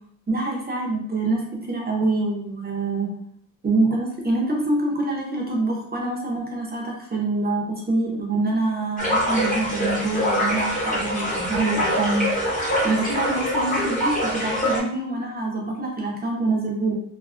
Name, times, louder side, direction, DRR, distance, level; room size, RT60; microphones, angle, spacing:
voice 1, 0.3-3.1 3.6-12.3 12.8-17.0, right 2 dB, 30° right, -1 dB, 0.5 m, -25 dB
sound 1, 9.0-14.8, equal, 25° left, 0.7 m, -24 dB
2.5 x 2.4 x 2.3 m, 0.62 s
wide cardioid pair, 175°, 34 cm